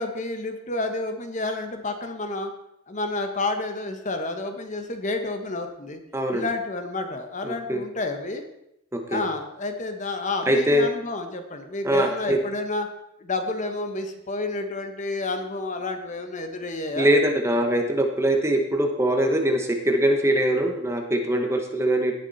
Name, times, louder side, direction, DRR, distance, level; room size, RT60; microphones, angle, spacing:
voice 1, 0.0-2.5 2.9-6.0 6.3-8.4 9.1-12.9 13.2-17.1, left 2 dB, 35° left, 6 dB, 1.3 m, -30 dB
voice 2, 6.1-6.4 7.4-7.8 8.9-9.3 10.5-10.9 11.8-12.4 17.0-22.1, right 1 dB, 15° right, 3 dB, 1.2 m, -22 dB
17.5 x 7.3 x 4.2 m, 0.81 s
head